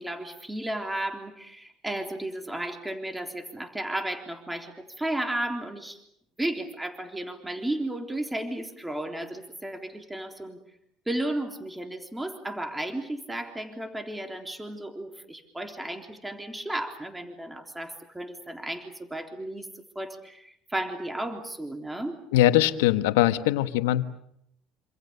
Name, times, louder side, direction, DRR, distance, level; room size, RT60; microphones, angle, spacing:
voice 1, 0.0-6.0 6.4-10.6 11.1-19.7 20.0-22.2, right 1 dB, 10° right, 5 dB, 3.6 m, -34 dB
voice 2, 22.3-24.0, left 14 dB, 80° left, 12 dB, 1.4 m, -21 dB
27.0 x 27.0 x 6.9 m, 0.74 s
hypercardioid pair, 75°, 0 cm